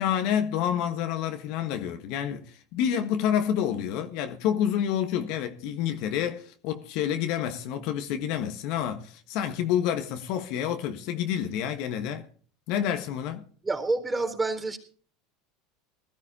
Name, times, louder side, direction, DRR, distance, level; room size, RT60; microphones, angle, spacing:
voice 1, 0.0-12.2 12.7-13.4, left 9 dB, 60° left, 1.4 m, -28 dB
voice 2, 13.6-14.8, right 3 dB, 15° right, 3.9 m, -28 dB
20.0 x 13.5 x 2.9 m
hypercardioid pair, 85°, 0 cm